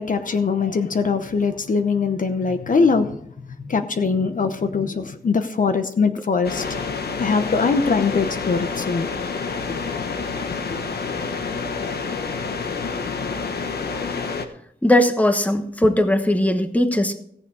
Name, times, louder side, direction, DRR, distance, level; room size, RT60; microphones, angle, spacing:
voice 1, 0.0-3.2 3.6-6.8 7.2-9.1, left 5 dB, 55° left, 8 dB, 0.9 m, -22 dB
sound 1, 6.4-14.5, left 4 dB, 90° left, 1.2 m, -28 dB
voice 2, 14.8-17.1, left 1 dB, 10° left, 7 dB, 1.2 m, -19 dB
17.0 x 7.1 x 4.8 m, 0.69 s
wide cardioid pair, 115°, 16 cm